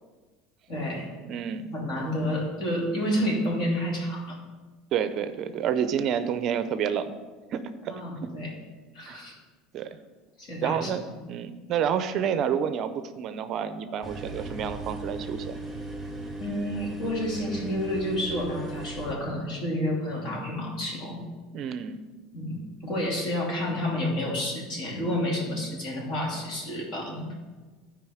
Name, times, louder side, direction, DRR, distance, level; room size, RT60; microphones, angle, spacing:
voice 1, 0.7-1.1 1.7-4.4 7.9-8.6 8.9-9.3 10.4-10.9 16.4-21.2 22.3-27.3, left 1 dB, 50° left, -2 dB, 2.8 m, -30 dB
voice 2, 1.2-1.7 4.9-7.1 7.5-7.6 9.1-9.2 9.7-10.0 10.6-11.0 11.3-15.6 21.5-22.0, right 8 dB, 40° right, 11 dB, 0.5 m, -29 dB
sound 1, 14.0-19.1, right 2 dB, ahead, 1.5 m, -37 dB
12.0 x 5.0 x 4.9 m, 1.3 s
supercardioid pair, 145°, 0 cm